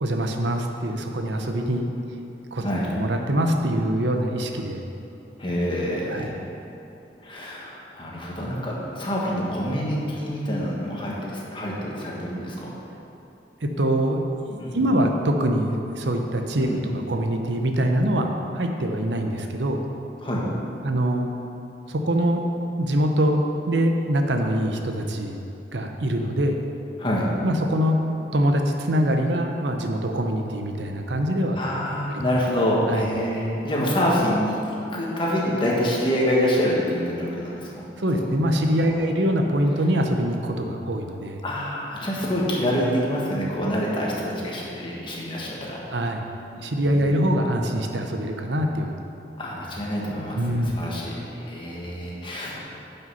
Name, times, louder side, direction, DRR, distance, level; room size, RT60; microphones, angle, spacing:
voice 1, 0.0-1.9 2.5-2.7 2.9-4.8 6.1-6.3 13.6-18.3 18.5-19.8 20.8-21.3 21.9-22.4 22.8-25.4 25.7-26.6 27.4-28.0 28.3-31.6 32.1-32.2 32.9-33.1 38.0-41.4 45.9-46.2 46.5-48.9 50.3-50.8, equal, 85° right, 3 dB, 0.8 m, -24 dB
voice 2, 2.6-2.9 5.4-6.3 7.2-12.7 14.6-14.9 16.6-16.8 20.2-20.5 27.0-27.3 31.6-37.9 38.1-38.3 38.8-39.1 41.4-45.8 46.9-47.1 49.4-50.4 50.8-52.6, equal, 30° left, -4 dB, 1.6 m, -26 dB
9.4 x 5.6 x 5.7 m, 2.9 s
head